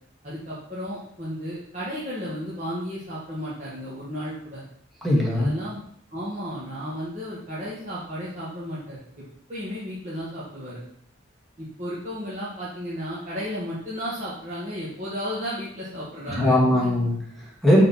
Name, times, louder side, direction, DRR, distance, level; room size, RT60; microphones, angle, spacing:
voice 1, 0.2-4.6 5.3-5.8 6.1-9.0 9.5-10.8 11.6-16.9, equal, 40° right, -9 dB, 2.1 m, -33 dB
voice 2, 5.0-5.5 16.3-17.8, left 1 dB, ahead, -5 dB, 1.8 m, -20 dB
6.5 x 6.1 x 4.4 m, 0.66 s
head